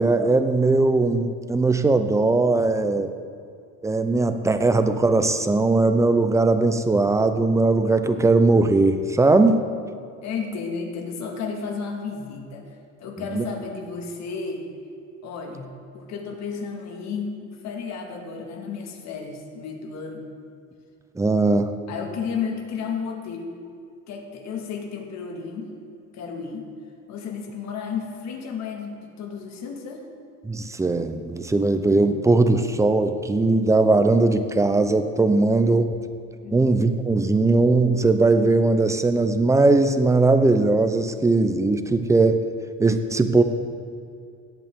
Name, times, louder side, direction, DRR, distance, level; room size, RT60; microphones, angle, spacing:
voice 1, 0.0-3.1 3.8-9.6 13.3-13.4 21.2-21.7 30.4-36.0 36.5-42.4 42.8-43.4, right 3 dB, 10° right, 9 dB, 0.6 m, -19 dB
voice 2, 10.2-12.7 13.0-14.7 15.2-20.2 21.9-23.6 24.1-25.7 26.1-26.7 27.1-30.1 36.4-36.6, left 5 dB, 60° left, 2 dB, 1.9 m, -33 dB
17.5 x 8.2 x 3.7 m, 2.5 s
cardioid pair, 130°, 31 cm